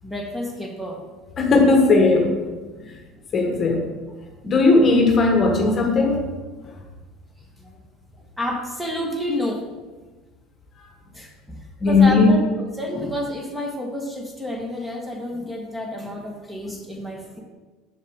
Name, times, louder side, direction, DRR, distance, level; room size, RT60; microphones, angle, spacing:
voice 1, 0.0-1.0 2.8-3.2 7.6-7.8 8.4-9.6 11.1-17.4, equal, 5° right, 0 dB, 1.7 m, -30 dB
voice 2, 1.4-2.4 3.3-3.9 4.4-6.3 11.8-12.3, left 3 dB, 40° left, 2 dB, 1.2 m, -17 dB
7.2 x 6.7 x 3.7 m, 1.3 s
hypercardioid pair, 85°, 0 cm